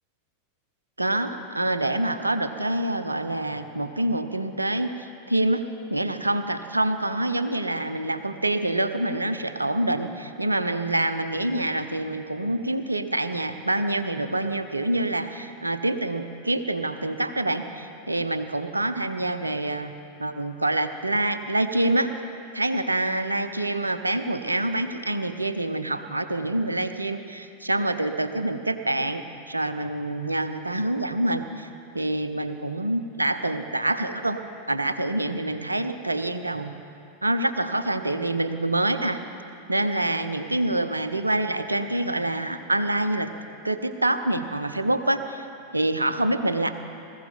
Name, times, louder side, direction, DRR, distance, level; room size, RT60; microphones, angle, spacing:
voice 1, 1.0-5.6 5.9-19.9 20.2-22.1 22.5-31.7 31.9-34.4 34.7-36.7 37.2-39.2 39.7-43.3 43.6-45.5 45.7-46.7, right 1 dB, 80° right, 10 dB, 0.7 m, -26 dB
20.0 x 15.0 x 4.1 m, 2.5 s
figure-of-eight pair, 90°, 0 cm